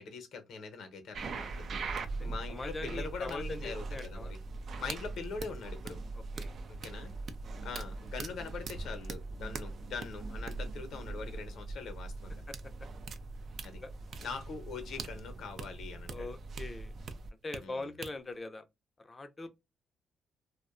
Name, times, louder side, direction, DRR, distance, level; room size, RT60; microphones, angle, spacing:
voice 1, 0.0-4.4 4.8-6.0 6.7-7.1 7.6-12.4 13.6-13.8 14.2-16.3 17.6-17.9, left 5 dB, 70° left, 0.7 m, -43 dB
sound 1, 1.1-17.6 18.0-18.1, right 3 dB, 55° right, 0.4 m, -41 dB
voice 2, 2.2-4.3 6.4-6.5 13.8-13.9 16.1-16.9 17.4-18.7 19.0-19.5, left 2 dB, 25° left, 0.5 m, -42 dB
2.5 x 2.1 x 2.4 m
cardioid pair, 90°, 0 cm